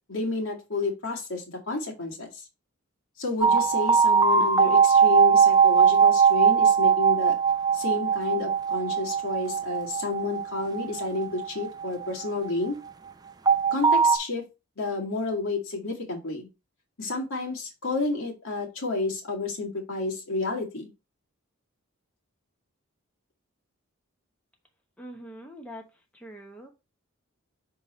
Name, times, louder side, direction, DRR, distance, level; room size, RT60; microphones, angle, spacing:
voice 1, 0.1-2.3 3.2-7.3 7.7-12.8 13.7-14.4 14.8-16.5 17.0-20.9, left 3 dB, 70° left, -1 dB, 2.1 m, -30 dB
sound 1, 3.4-12.5 13.5-14.2, right 6 dB, 20° right, 0.4 m, -21 dB
voice 2, 25.0-25.8 26.1-26.7, equal, 5° left, 2 dB, 0.9 m, -43 dB
6.1 x 3.8 x 4.3 m, 0.26 s
head